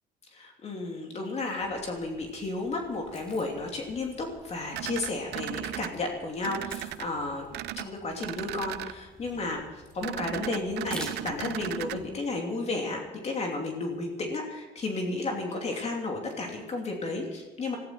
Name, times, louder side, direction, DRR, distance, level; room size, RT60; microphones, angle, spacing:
voice 1, 0.3-7.5 7.8-9.6 9.9-17.8, left 3 dB, 40° left, 1 dB, 2.9 m, -33 dB
sound 1, 1.6-12.1, right 1 dB, 5° left, 3.5 m, -49 dB
sound 2, 4.7-5.9 6.4-7.1 7.5-7.9 8.2-8.9 10.0-12.0, right 15 dB, 80° right, 0.6 m, -36 dB
19.0 x 14.5 x 4.6 m, 1.2 s
cardioid pair, 110°, 17 cm